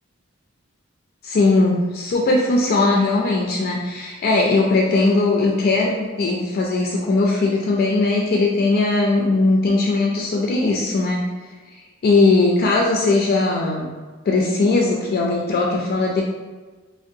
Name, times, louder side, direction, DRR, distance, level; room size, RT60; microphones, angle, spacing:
voice 1, 1.2-11.2 11.7-13.9 14.3-16.2, left 3 dB, 50° left, -2 dB, 0.3 m, -19 dB
3.5 x 2.1 x 2.6 m, 1.4 s
head